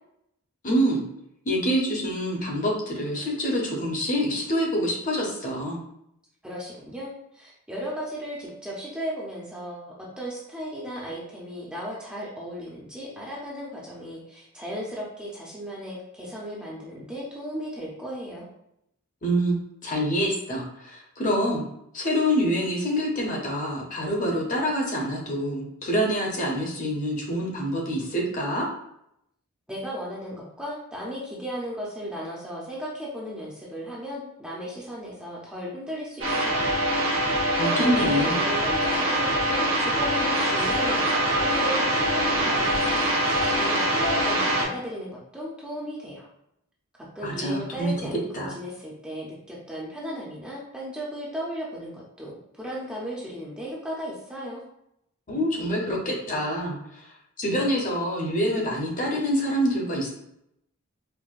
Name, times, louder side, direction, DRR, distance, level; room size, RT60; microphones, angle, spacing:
voice 1, 0.6-1.0 1.4-5.8 19.2-21.6 21.9-28.7 37.6-38.4 47.2-47.9 48.3-48.5 55.3-57.1 57.4-60.1, equal, 35° left, -2 dB, 0.7 m, -26 dB
voice 2, 6.4-18.5 29.7-36.7 37.6-46.3 47.1-54.6, equal, 5° right, -6 dB, 0.5 m, -35 dB
sound 1, 36.2-44.7, right 1 dB, 70° right, 0.9 m, -24 dB
4.5 x 2.1 x 2.4 m, 0.78 s
head